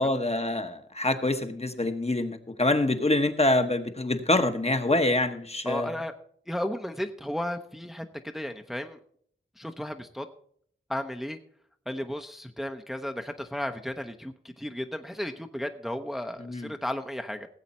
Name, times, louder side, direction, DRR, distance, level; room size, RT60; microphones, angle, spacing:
voice 1, 0.0-5.9 16.4-16.7, left 2 dB, 30° left, 7 dB, 1.0 m, -25 dB
voice 2, 5.6-6.1 6.5-9.0 9.6-10.3 10.9-11.4 11.9-17.5, left 1 dB, ahead, 6 dB, 0.7 m, -34 dB
17.0 x 7.9 x 4.2 m, 0.62 s
wide cardioid pair, 85°, 20 cm